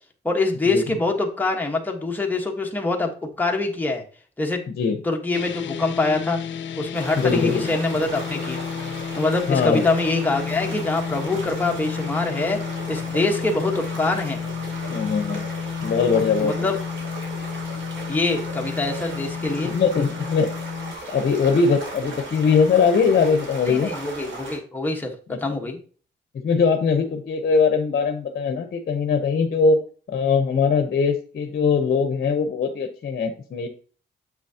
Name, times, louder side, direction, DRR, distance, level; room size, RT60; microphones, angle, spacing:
voice 1, 0.2-3.1 3.4-4.0 4.4-4.6 5.0-6.4 6.8-8.6 9.2-12.6 12.9-14.4 16.4-16.8 18.1-19.7 23.7-25.8, left 3 dB, 10° left, 1 dB, 1.3 m, -24 dB
sound 1, 5.3-20.9, left 7 dB, 70° left, 0.5 m, -31 dB
sound 2, 6.9-24.6, right 3 dB, 75° right, 2.8 m, -36 dB
voice 2, 7.2-7.7 9.5-9.9 14.9-15.4 15.8-16.5 19.7-20.5 21.1-23.9 25.3-25.4 26.4-29.8 30.1-33.7, left 5 dB, 50° left, 7 dB, 0.9 m, -21 dB
7.5 x 6.1 x 2.8 m, 0.40 s
wide cardioid pair, 125°, 20 cm